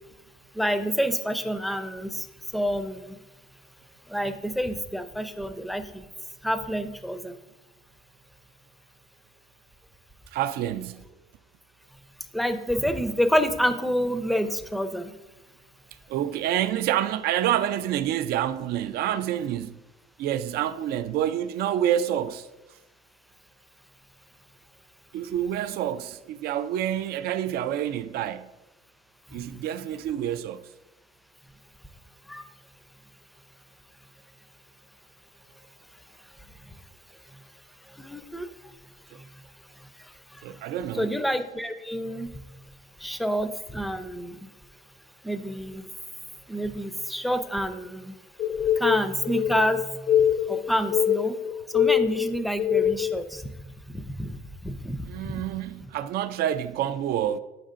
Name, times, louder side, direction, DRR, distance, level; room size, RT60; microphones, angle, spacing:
voice 1, 0.5-2.3 2.5-3.2 4.1-6.0 6.4-7.3 12.3-15.1 32.3-32.4 38.0-38.5 41.0-42.3 43.0-44.5 45.2-45.9 46.5-48.1 48.8-49.8 50.5-51.4 51.7-53.4 53.9-54.4 54.6-55.0 55.2-55.4, equal, ahead, 0.5 m, -28 dB
voice 2, 10.3-11.0 16.1-19.8 20.2-22.5 25.1-28.5 29.3-30.6 40.4-41.1 55.1-57.4, right 11 dB, 65° right, 0.4 m, -28 dB
sound 1, 48.4-53.2, left 9 dB, 50° left, 0.5 m, -24 dB
8.6 x 6.5 x 2.5 m
cardioid pair, 110°, 17 cm